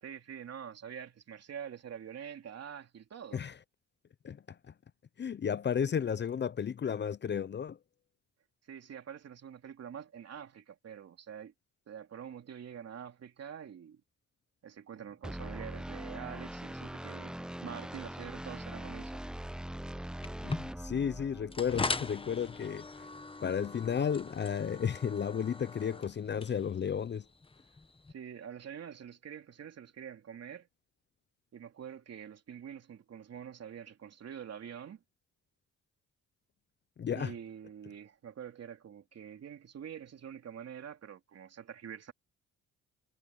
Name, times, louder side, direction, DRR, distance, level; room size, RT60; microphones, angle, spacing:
voice 1, 0.0-3.4 8.7-11.5 11.9-14.0 14.6-17.4 17.6-19.2 28.1-30.7 31.5-35.0 37.1-42.1, right 8 dB, 55° right, 3.3 m, -46 dB
voice 2, 5.2-7.8 20.4-22.8 23.4-27.2 37.0-37.3, left 7 dB, 35° left, 0.7 m, -33 dB
sound 1, 15.2-21.7, right 1 dB, 5° right, 0.6 m, -42 dB
sound 2, 20.2-28.1, left 3 dB, 20° left, 1.2 m, -41 dB
cardioid pair, 90°, 30 cm